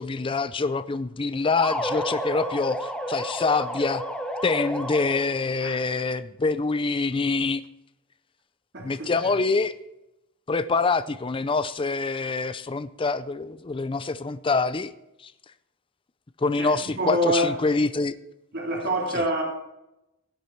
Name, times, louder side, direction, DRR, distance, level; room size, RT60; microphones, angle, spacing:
voice 1, 0.0-4.0 4.4-7.6 8.8-9.7 10.5-14.9 15.2-15.3 16.4-18.2, left 3 dB, 25° left, 13 dB, 0.4 m, -25 dB
sound 1, 1.6-5.5, equal, 5° left, 1.3 m, -31 dB
voice 2, 8.7-9.1 16.6-17.5 18.5-19.4, equal, 55° right, 0 dB, 3.0 m, -26 dB
17.0 x 8.4 x 4.5 m, 0.90 s
head